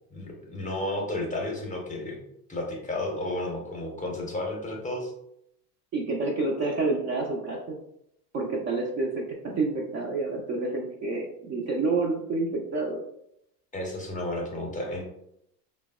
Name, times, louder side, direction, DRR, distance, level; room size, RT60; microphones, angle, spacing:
voice 1, 0.1-2.2 2.5-5.1 13.7-15.0, left 1 dB, 15° left, -1 dB, 0.6 m, -32 dB
voice 2, 5.9-7.8 8.3-13.0, right 3 dB, 35° right, 0 dB, 0.4 m, -28 dB
3.2 x 2.0 x 2.2 m, 0.77 s
hypercardioid pair, 85°, 48 cm